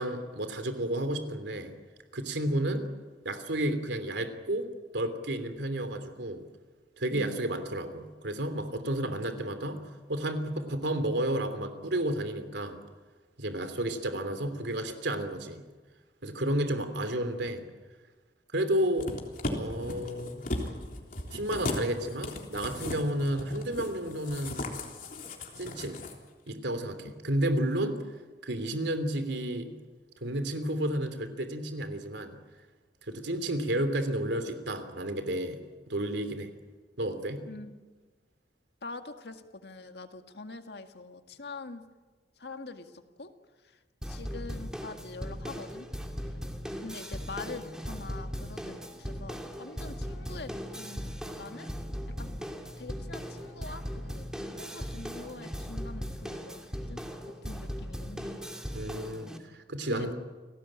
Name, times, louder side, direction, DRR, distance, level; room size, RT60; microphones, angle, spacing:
voice 1, 0.0-1.7 2.1-2.8 3.2-4.7 4.9-6.4 7.0-9.8 10.1-12.8 13.4-15.6 16.2-17.6 18.5-19.2 19.4-20.4 21.3-24.7 25.6-26.0 26.5-28.0 28.4-29.7 30.2-32.4 33.1-35.6 35.9-36.5 37.0-37.4 58.7-60.1, right 1 dB, 85° right, 9 dB, 3.0 m, -31 dB
sound 1, 19.0-26.1 26.5-26.6, left 1 dB, 50° left, 3.5 m, -37 dB
voice 2, 37.4-37.8 38.8-41.8 42.4-45.9 46.2-46.4 46.8-51.7 52.2-52.4 52.8-54.3 54.6-58.5 59.9-60.1, left 3 dB, 70° left, 6 dB, 2.0 m, -44 dB
sound 2, 44.0-59.4, equal, 5° right, 2.5 m, -38 dB
29.0 x 18.5 x 8.9 m, 1.3 s
head